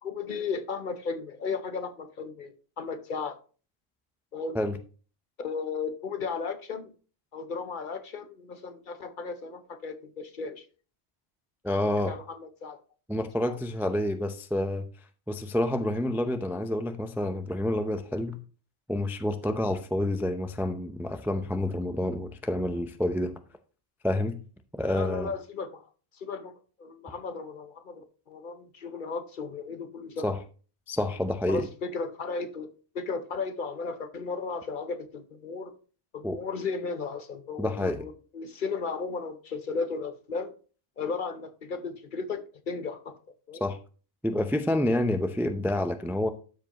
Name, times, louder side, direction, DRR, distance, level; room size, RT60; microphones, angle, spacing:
voice 1, 0.0-3.4 4.3-4.6 5.4-6.9 7.3-10.6 12.1-12.8 13.4-13.6 24.9-25.8 26.1-26.5 26.8-30.3 31.5-32.7 32.9-35.7 36.1-40.5 41.0-43.1 43.5-43.6, left 4 dB, 55° left, 0.9 m, -35 dB
voice 2, 11.6-12.1 13.1-14.9 15.3-18.4 18.9-23.4 24.0-24.4 24.8-25.3 30.2-30.4 30.9-31.7 36.2-36.4 37.6-38.1 43.6-43.8 44.2-46.3, left 1 dB, 5° right, 0.4 m, -28 dB
12.5 x 4.7 x 2.9 m
omnidirectional pair, 1.1 m